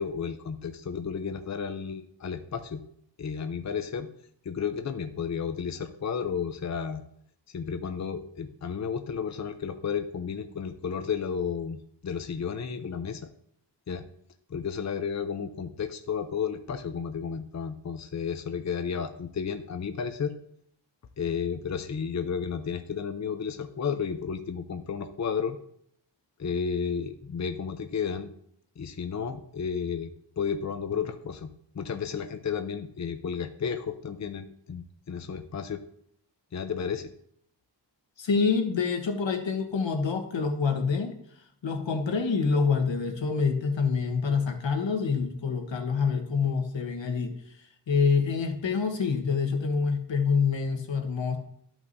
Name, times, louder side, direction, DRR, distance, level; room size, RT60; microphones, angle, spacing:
voice 1, 0.0-2.8 3.2-4.1 4.4-7.0 7.5-13.3 13.9-14.1 14.5-20.3 21.2-25.6 26.4-28.3 28.8-35.8 36.5-37.1, left 6 dB, 40° left, 8 dB, 0.6 m, -32 dB
voice 2, 38.2-41.1 41.6-47.3 47.9-51.4, left 5 dB, 85° left, 5 dB, 1.4 m, -26 dB
13.5 x 5.9 x 2.7 m, 0.68 s
wide cardioid pair, 115°, 44 cm